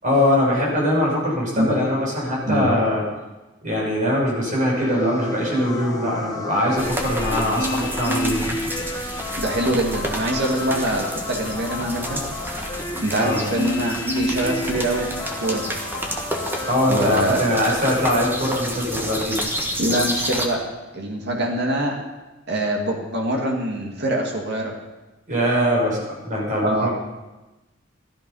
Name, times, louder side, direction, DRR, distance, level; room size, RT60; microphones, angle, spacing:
voice 1, 0.0-3.0 3.6-8.6 13.2-13.4 16.7-19.4 25.3-26.9, left 1 dB, 40° right, -3 dB, 6.1 m, -22 dB
sound 1, 4.8-16.7, left 1 dB, 20° left, 1.5 m, -31 dB
sound 2, 6.8-20.5, equal, 10° right, 1.6 m, -30 dB
voice 2, 9.4-12.2 13.0-15.6 16.9-17.8 19.8-20.6 20.9-22.0 22.5-24.7 26.6-26.9, right 1 dB, 60° right, 0 dB, 2.3 m, -24 dB
14.5 x 13.0 x 5.6 m, 1.1 s
head